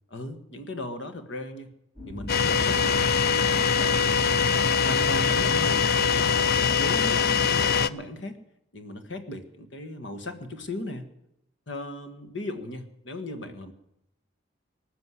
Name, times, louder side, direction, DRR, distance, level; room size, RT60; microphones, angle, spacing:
voice 1, 0.1-1.7 2.1-3.2 3.8-5.8 6.1-8.4 8.7-11.1 11.7-13.7, left 1 dB, 75° left, 8 dB, 1.6 m, -37 dB
sound 1, 1.9-7.0, left 1 dB, 35° left, 4.1 m, -40 dB
sound 2, 2.3-7.9, left 6 dB, 55° left, 0.5 m, -23 dB
19.5 x 6.8 x 9.7 m, 0.81 s
head